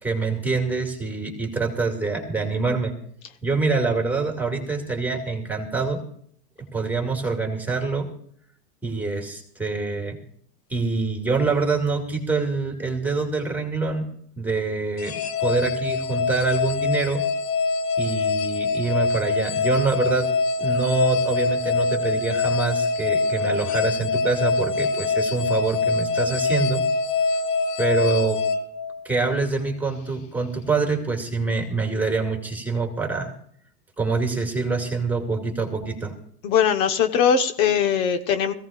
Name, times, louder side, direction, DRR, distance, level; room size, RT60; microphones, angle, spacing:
voice 1, 0.0-3.0 3.4-6.0 6.7-8.1 8.8-10.2 10.7-14.1 14.4-17.2 18.0-20.3 20.6-26.8 27.8-28.4 29.0-33.3 34.0-36.2, right 4 dB, 5° right, 2 dB, 2.3 m, -25 dB
sound 1, 15.0-29.4, left 4 dB, 85° left, 1.5 m, -24 dB
voice 2, 36.4-38.5, left 7 dB, 55° left, 8 dB, 1.3 m, -20 dB
21.5 x 16.0 x 2.5 m, 0.62 s
supercardioid pair, 150°, 46 cm